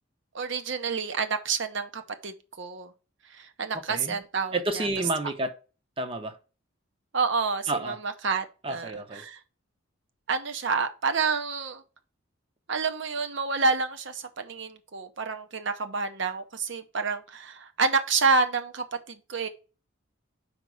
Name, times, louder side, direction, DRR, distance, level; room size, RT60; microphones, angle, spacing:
voice 1, 0.3-2.9 3.3-4.9 7.1-9.4 10.3-11.8 12.7-19.5, right 4 dB, 60° right, 0.8 m, -29 dB
voice 2, 3.7-4.2 4.5-5.5 6.0-6.4 7.7-8.0 8.6-9.2, right 2 dB, 25° right, 0.7 m, -30 dB
5.2 x 5.2 x 4.7 m
head